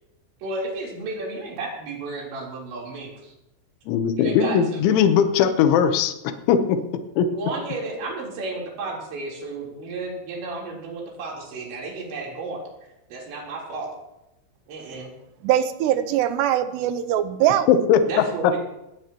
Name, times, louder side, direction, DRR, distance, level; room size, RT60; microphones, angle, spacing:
voice 1, 0.4-3.3 4.2-4.8 7.3-12.6 13.1-13.9 14.7-15.1 18.1-18.6, right 3 dB, 65° right, -2 dB, 6.1 m, -32 dB
voice 2, 3.9-6.1 6.5-6.8 7.2-7.3 17.7-18.1, left 7 dB, 75° left, 8 dB, 3.3 m, -19 dB
voice 3, 15.4-17.7, right 11 dB, 80° right, 10 dB, 2.6 m, -22 dB
20.0 x 17.0 x 3.0 m, 0.91 s
omnidirectional pair, 5.6 m